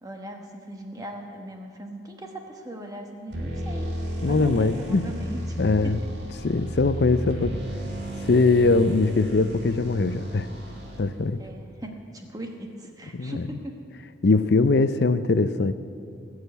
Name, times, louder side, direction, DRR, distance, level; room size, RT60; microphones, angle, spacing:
voice 1, 0.0-3.9 4.2-5.6 5.8-5.9 6.3-6.4 11.4-13.8, right 1 dB, 20° right, 3 dB, 1.1 m, -39 dB
sound 1, 3.3-11.3, equal, 60° right, 2.1 m, -33 dB
voice 2, 4.2-5.1 5.6-6.0 6.4-7.6 8.2-10.5 11.0-11.4 13.1-13.5 14.2-15.7, left 3 dB, 60° left, 13 dB, 0.5 m, -21 dB
19.0 x 6.5 x 8.2 m, 2.4 s
head